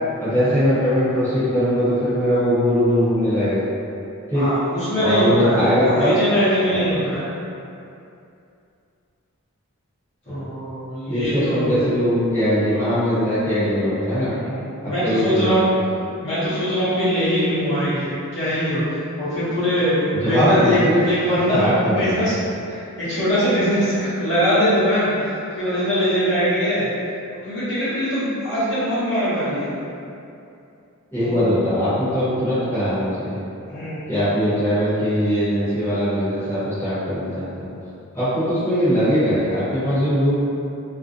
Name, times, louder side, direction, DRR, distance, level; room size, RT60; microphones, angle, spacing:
voice 1, 0.2-3.7 4.3-4.5 5.0-6.1 6.7-6.8 10.3-10.5 11.1-14.3 14.8-15.7 20.1-21.0 21.5-22.3 31.1-33.4 34.1-37.7 38.1-40.4, equal, 10° left, -15 dB, 0.8 m, -20 dB
voice 2, 4.3-7.3 10.3-11.7 14.3-15.7 16.2-18.8 19.2-22.3 22.7-26.9 27.5-29.7 31.2-31.5 33.7-34.0, equal, 55° left, -13 dB, 0.8 m, -22 dB
2.5 x 2.1 x 2.5 m, 2.6 s
head